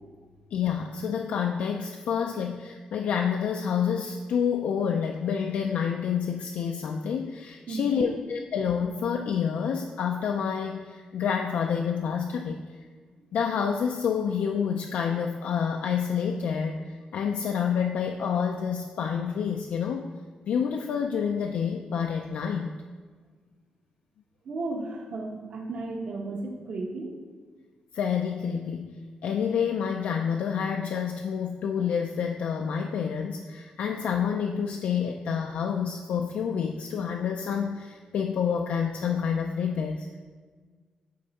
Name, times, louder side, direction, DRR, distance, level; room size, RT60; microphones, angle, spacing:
voice 1, 0.5-12.6 13.3-16.8 17.1-20.1 20.5-22.8 27.9-28.9 29.2-40.2, left 7 dB, 80° left, 3 dB, 0.3 m, -28 dB
voice 2, 7.7-8.1 24.4-27.2, right 2 dB, 55° right, 1 dB, 0.9 m, -34 dB
8.5 x 3.3 x 4.1 m, 1.5 s
wide cardioid pair, 155°, 2 cm